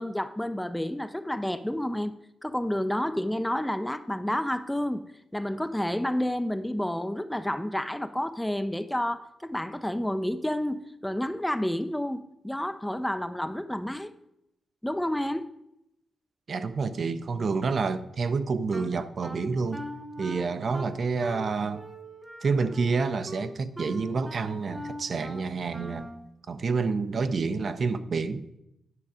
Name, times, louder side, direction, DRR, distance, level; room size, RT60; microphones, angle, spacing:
voice 1, 0.0-2.1 2.4-5.0 5.3-14.1 14.8-15.5, left 1 dB, 5° left, 0.4 m, -30 dB
voice 2, 16.5-19.8 20.2-21.8 22.4-26.1 26.5-28.6, right 4 dB, 50° right, 0.6 m, -28 dB
Wind instrument woodwind instrument, 18.7-26.3, equal, 15° right, 1.0 m, -41 dB
9.8 x 6.0 x 5.0 m
cardioid pair, 95°, 0 cm